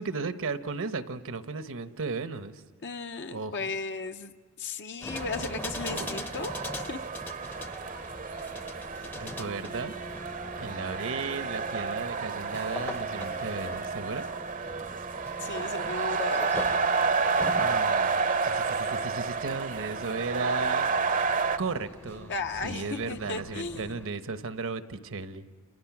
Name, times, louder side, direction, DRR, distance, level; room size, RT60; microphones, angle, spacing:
voice 1, 0.0-2.6 3.3-3.7 5.5-6.1 9.2-9.9 10.6-14.3 17.5-20.9 21.6-22.3 22.6-25.5, right 4 dB, 65° right, 11 dB, 1.0 m, -35 dB
voice 2, 2.8-6.5 6.9-7.0 15.4-16.5 22.3-24.0, left 4 dB, 50° left, 6 dB, 0.7 m, -35 dB
sound 1, 5.0-24.1, left 1 dB, 10° left, 0.7 m, -42 dB
sound 2, 5.1-21.6, right 5 dB, 40° right, 0.7 m, -30 dB
29.5 x 29.5 x 6.1 m, 1.4 s
head